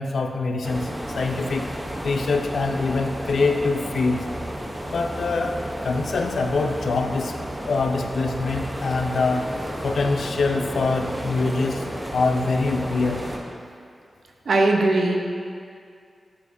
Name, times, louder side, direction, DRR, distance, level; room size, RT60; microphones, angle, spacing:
voice 1, 0.0-1.7 2.0-4.3 4.9-7.3 7.6-9.5 9.8-11.9 12.1-13.3, left 3 dB, 80° left, 5 dB, 0.5 m, -24 dB
sound 1, 0.6-13.4, equal, 10° right, 0.9 m, -32 dB
voice 2, 14.5-15.3, right 2 dB, 75° right, 2 dB, 0.8 m, -19 dB
11.0 x 5.7 x 2.7 m, 2.3 s
wide cardioid pair, 105°, 0 cm